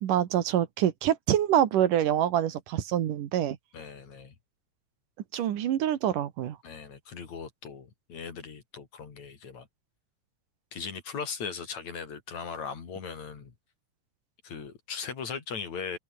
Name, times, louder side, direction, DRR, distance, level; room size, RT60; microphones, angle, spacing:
voice 1, 0.0-3.6 5.3-6.6, right 11 dB, 75° right, 3.1 m, -26 dB
voice 2, 3.7-4.3 6.6-9.7 10.7-13.5 14.4-16.0, left 6 dB, 55° left, 4.5 m, -38 dB
omnidirectional pair, 3.8 m